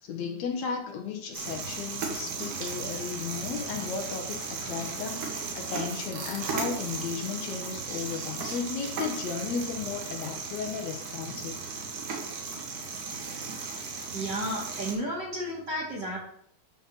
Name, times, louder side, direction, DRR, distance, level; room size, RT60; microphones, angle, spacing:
voice 1, 0.0-11.6, left 6 dB, 70° left, 4 dB, 2.1 m, -35 dB
sound 1, 1.3-14.9, right 4 dB, 85° right, 3.2 m, -36 dB
voice 2, 14.1-16.2, right 1 dB, 40° right, -1 dB, 2.4 m, -32 dB
10.5 x 4.2 x 6.1 m, 0.70 s
omnidirectional pair, 3.5 m